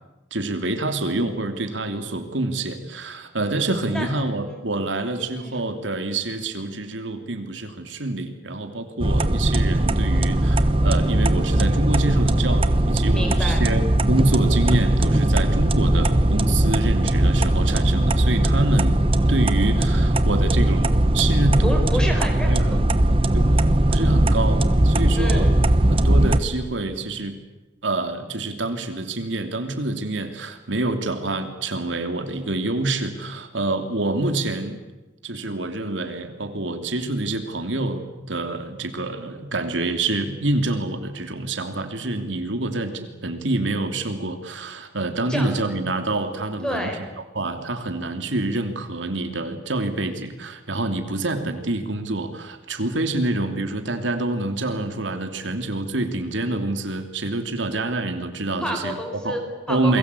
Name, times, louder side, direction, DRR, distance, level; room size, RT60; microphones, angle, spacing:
voice 1, 0.3-18.9 19.3-21.8 22.4-22.8 23.3-25.5 25.9-27.4 27.8-34.8 35.2-46.9 47.3-58.9 59.2-59.3 59.7-60.0, right 2 dB, 80° right, 7 dB, 2.9 m, -27 dB
sound 1, 9.0-26.4, right 1 dB, 30° right, 1.1 m, -19 dB
voice 2, 13.1-13.6 21.6-22.8 25.1-25.6 45.3-45.5 46.6-47.0 58.6-60.0, equal, 5° left, 3 dB, 5.1 m, -29 dB
29.0 x 22.0 x 8.4 m, 1.1 s
head